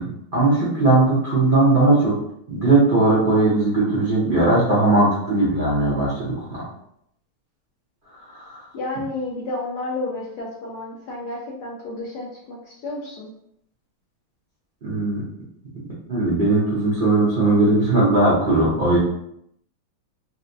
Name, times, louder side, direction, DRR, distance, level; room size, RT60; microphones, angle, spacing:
voice 1, 0.0-2.2 2.5-6.6 8.3-8.6 14.8-15.2 16.1-19.0, right 2 dB, 75° right, -9 dB, 0.4 m, -18 dB
voice 2, 8.7-13.3, left 2 dB, 70° left, -4 dB, 1.0 m, -31 dB
4.1 x 2.1 x 2.6 m, 0.74 s
omnidirectional pair, 2.3 m